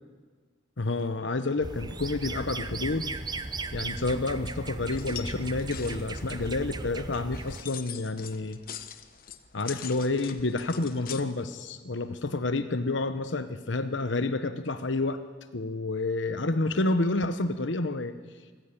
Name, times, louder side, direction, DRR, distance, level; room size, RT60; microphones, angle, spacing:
voice 1, 0.8-3.2 3.7-8.6 9.5-15.2 15.5-18.1, left 2 dB, 80° left, 10 dB, 1.0 m, -29 dB
sound 1, 1.6-7.6, right 3 dB, 20° right, 0.8 m, -36 dB
sound 2, 4.9-11.2, left 9 dB, 50° left, 1.1 m, -43 dB
25.0 x 14.0 x 9.9 m, 1.5 s
head